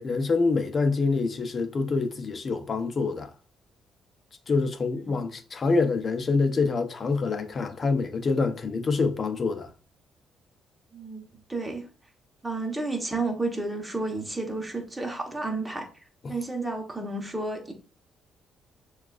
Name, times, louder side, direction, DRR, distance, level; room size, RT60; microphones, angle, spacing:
voice 1, 0.0-3.3 4.5-9.7 16.2-16.3, left 4 dB, 40° left, 0.6 m, -26 dB
voice 2, 10.9-11.8 12.4-15.9 16.3-17.7, right 2 dB, 10° right, 1.1 m, -31 dB
6.6 x 2.4 x 2.4 m
cardioid pair, 90°, 0 cm